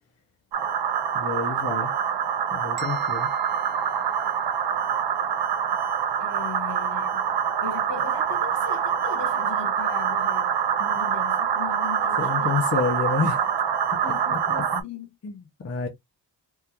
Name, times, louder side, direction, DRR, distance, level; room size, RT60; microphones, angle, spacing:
sound 1, 0.5-14.8, right 8 dB, 60° right, 0.6 m, -25 dB
voice 1, 1.1-1.9 2.5-3.3 12.2-13.5 14.7-14.8 15.2-15.9, left 4 dB, 35° left, 0.7 m, -28 dB
sound 2, 2.8-4.8, equal, 25° right, 0.7 m, -48 dB
voice 2, 6.2-7.3 7.6-12.6 14.0-15.1, left 6 dB, 65° left, 1.6 m, -38 dB
3.7 x 2.4 x 2.8 m
wide cardioid pair, 165°, 44 cm